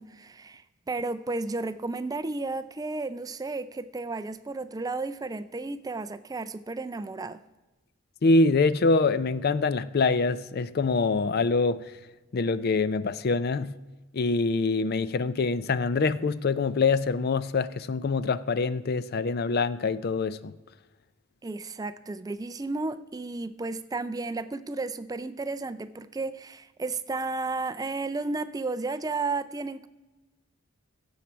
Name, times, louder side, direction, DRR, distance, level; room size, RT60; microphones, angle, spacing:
voice 1, 0.0-7.4 21.4-29.9, right 3 dB, 15° right, 0.3 m, -33 dB
voice 2, 8.2-11.8 12.3-13.8 14.1-20.5, left 3 dB, 45° left, 0.4 m, -25 dB
16.0 x 7.3 x 4.5 m
head